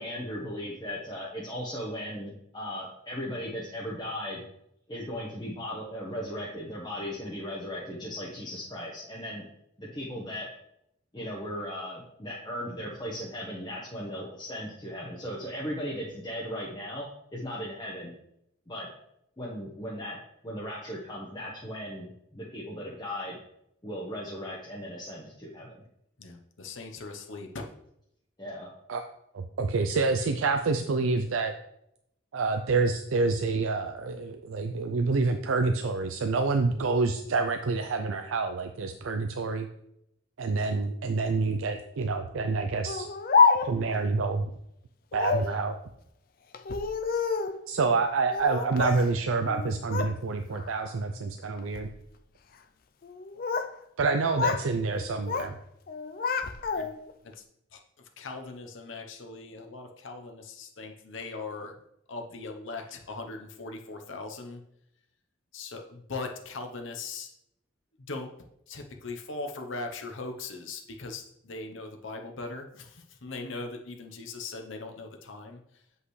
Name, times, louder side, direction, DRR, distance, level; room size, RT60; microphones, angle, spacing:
voice 1, 0.0-4.4 4.9-9.4 9.8-10.5 11.1-17.1 17.3-18.1 18.7-18.9 19.4-20.2 20.4-23.4 23.8-25.8 28.4-28.7, equal, 20° left, -5 dB, 1.0 m, -37 dB
voice 2, 26.2-27.6 56.7-56.9 57.2-57.4 57.7-61.8 62.1-64.6 65.5-67.3 68.1-68.3 68.7-75.6, left 3 dB, 75° left, 3 dB, 0.8 m, -40 dB
voice 3, 29.3-31.5 32.3-39.7 40.4-43.1 43.6-44.5 45.1-45.8 47.7-51.9 54.0-55.5, right 3 dB, 80° right, 6 dB, 0.5 m, -27 dB
Speech, 42.9-44.0 45.1-45.6 46.5-47.6 48.3-49.1 49.4-50.1 50.5-50.9 51.6-51.9 53.0-53.7 54.0-54.7 55.0-55.5 55.9-57.1, left 5 dB, 45° left, 0.4 m, -28 dB
8.1 x 5.4 x 3.2 m, 0.77 s
head